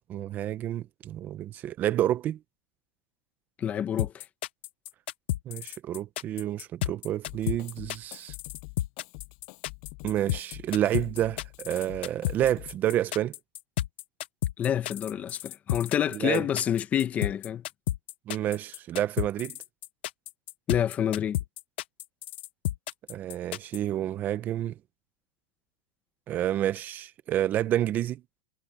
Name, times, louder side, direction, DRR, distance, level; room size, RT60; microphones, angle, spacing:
voice 1, 0.1-2.4 5.5-8.3 10.0-13.4 16.1-16.5 18.3-19.6 23.1-24.7 26.3-28.2, right 12 dB, 30° right, 1.0 m, -29 dB
voice 2, 3.6-4.2 14.6-17.6 20.7-21.4, left 9 dB, 25° left, 1.1 m, -28 dB
sound 1, 4.0-23.8, left 14 dB, 70° left, 0.9 m, -32 dB
Drum kit, 7.3-12.9, left 40 dB or more, 50° left, 7.2 m, -46 dB
supercardioid pair, 145°, 6 cm